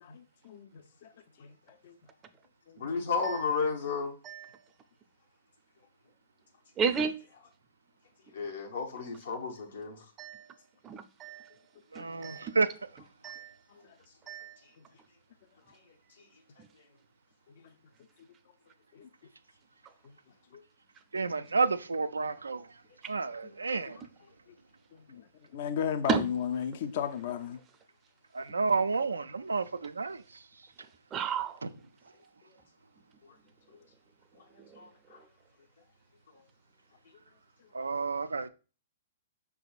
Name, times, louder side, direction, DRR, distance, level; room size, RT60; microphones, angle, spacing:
voice 1, 0.4-1.1 1.4-1.5 1.8-1.9 2.7-3.0 18.9-19.1 20.5-20.6 24.9-25.2 25.5-27.6, left 8 dB, 55° left, 0.4 m, -34 dB
voice 2, 2.8-4.1 8.3-10.0 34.8-34.9, left 5 dB, 75° left, 0.8 m, -32 dB
voice 3, 6.8-7.1 10.2-10.4 10.8-11.5 12.2-12.5 13.2-13.5 14.3-14.5 26.1-26.2 31.1-31.6, right 6 dB, 25° right, 0.5 m, -31 dB
voice 4, 11.9-12.7 21.1-22.7 23.1-24.0 28.3-30.2 31.6-31.7 37.7-38.5, right 4 dB, 90° right, 0.3 m, -30 dB
5.7 x 3.4 x 2.3 m
hypercardioid pair, 120°, 0 cm